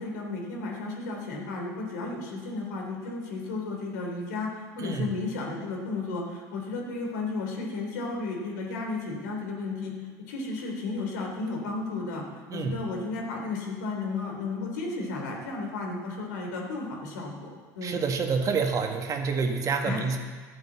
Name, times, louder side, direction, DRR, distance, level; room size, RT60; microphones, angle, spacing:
voice 1, 0.0-9.9 10.3-12.2 12.5-18.0 19.8-20.0, left 3 dB, 85° left, 0 dB, 3.3 m, -33 dB
voice 2, 4.8-5.1 12.5-12.8 17.8-20.2, right 5 dB, 40° right, 4 dB, 1.7 m, -28 dB
12.0 x 8.3 x 7.5 m, 1.5 s
supercardioid pair, 95°, 9 cm